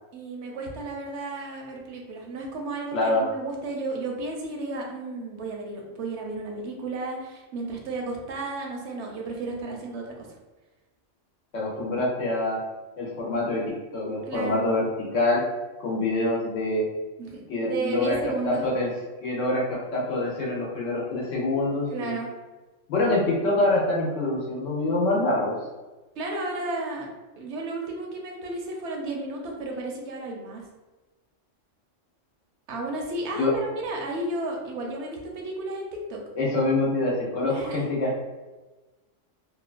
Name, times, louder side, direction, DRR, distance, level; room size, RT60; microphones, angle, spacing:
voice 1, 0.1-10.3 14.3-14.6 17.2-18.7 21.9-22.3 26.2-27.1 27.4-30.6 32.7-36.2 37.5-37.9, right 2 dB, 70° right, 0 dB, 0.8 m, -33 dB
voice 2, 2.9-3.2 11.5-12.6 13.0-15.5 15.8-16.9 17.5-18.2 18.4-18.9 19.2-22.2 22.9-25.6 33.3-33.5 36.3-38.2, left 2 dB, 80° left, -4 dB, 1.2 m, -25 dB
2.8 x 2.2 x 2.4 m, 1.2 s
omnidirectional pair, 1.3 m